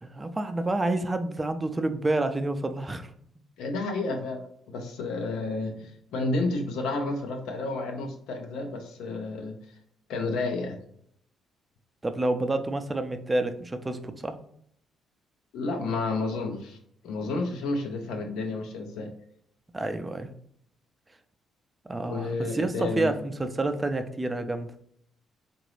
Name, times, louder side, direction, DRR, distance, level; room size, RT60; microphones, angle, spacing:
voice 1, 0.0-3.1 12.0-14.3 19.7-20.3 21.9-24.7, right 2 dB, 25° right, 8 dB, 0.5 m, -29 dB
voice 2, 3.6-9.6 10.1-10.8 15.5-16.8 17.0-19.1 22.0-23.1, left 3 dB, 75° left, 4 dB, 0.7 m, -31 dB
3.8 x 2.6 x 3.1 m, 0.67 s
hypercardioid pair, 50°, 0 cm